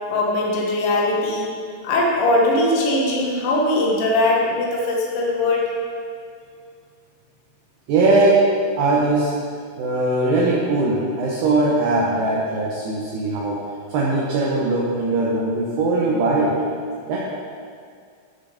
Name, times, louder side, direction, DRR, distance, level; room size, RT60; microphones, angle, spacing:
voice 1, 0.1-1.5 1.8-5.7, left 2 dB, 90° left, -2 dB, 3.8 m, -20 dB
voice 2, 7.9-8.5 8.8-9.3 9.8-13.6 13.9-16.6 17.1-17.2, right 2 dB, 70° right, -5 dB, 2.7 m, -20 dB
13.0 x 4.6 x 5.1 m, 2.2 s
omnidirectional pair, 5.4 m